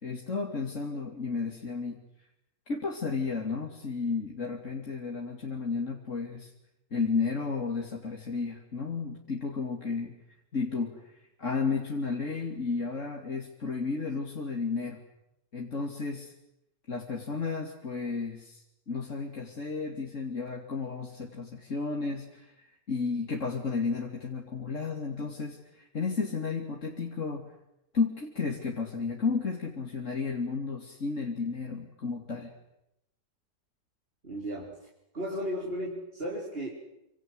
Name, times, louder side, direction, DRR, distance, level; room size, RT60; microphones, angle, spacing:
voice 1, 0.0-2.0 2.7-6.5 6.9-10.1 10.5-15.0 15.5-16.3 16.9-27.5 27.9-32.5, left 4 dB, 45° left, 0 dB, 3.1 m, -33 dB
voice 2, 34.2-34.7 35.1-36.7, equal, 35° right, -3 dB, 4.8 m, -34 dB
27.5 x 27.0 x 7.9 m, 0.84 s
omnidirectional pair, 1.8 m